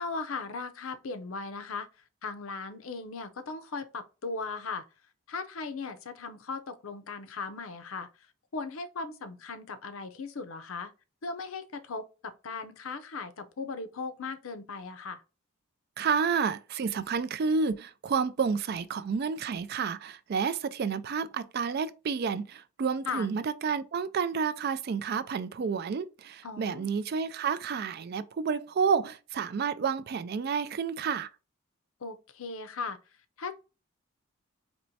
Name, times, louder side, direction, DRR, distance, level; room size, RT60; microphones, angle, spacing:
voice 1, 0.0-1.9 2.2-4.9 5.3-8.1 8.5-10.9 11.2-15.2 23.1-23.3 26.4-26.9 32.0-33.0 33.4-33.5, left 4 dB, 70° left, 0.6 m, -37 dB
voice 2, 16.0-31.3, right 6 dB, 45° right, 0.3 m, -30 dB
4.4 x 3.0 x 2.7 m
head